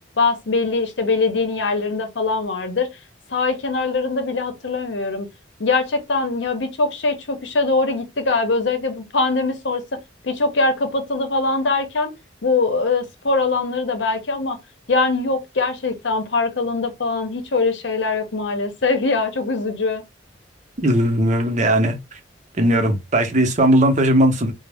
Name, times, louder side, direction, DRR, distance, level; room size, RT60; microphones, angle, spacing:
voice 1, 0.2-3.0 3.3-5.3 5.6-12.1 12.4-14.6 14.9-20.0, left 3 dB, 65° left, 0.7 m, -22 dB
voice 2, 20.8-22.2 22.5-24.5, right 1 dB, 40° right, 0.7 m, -18 dB
4.0 x 2.0 x 3.4 m
head